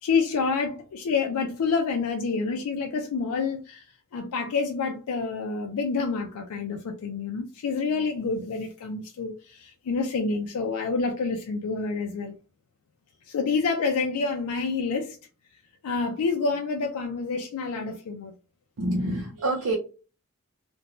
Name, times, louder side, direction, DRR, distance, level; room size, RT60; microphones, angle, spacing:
voice 1, 0.0-12.3 13.3-15.2 15.8-18.3, left 4 dB, 80° left, 0.4 m, -28 dB
voice 2, 18.8-19.8, right 1 dB, 70° right, 0.6 m, -27 dB
2.5 x 2.2 x 2.9 m
head